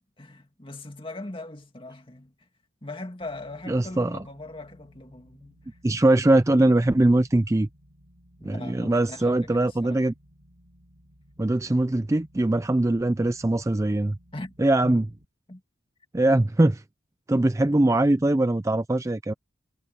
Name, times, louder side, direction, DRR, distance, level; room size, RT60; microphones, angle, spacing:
voice 1, 0.2-2.3 2.8-5.8 8.4-10.0 14.3-14.5 14.8-15.1 15.5-15.6, left 2 dB, 25° left, 2.3 m, -40 dB
sound 1, 3.2-15.2, equal, 55° right, 7.8 m, -57 dB
voice 2, 3.7-4.2 5.8-7.7 8.4-10.1 11.4-14.2 14.6-15.0 16.1-16.8 17.3-19.3, right 1 dB, 15° right, 0.4 m, -21 dB
head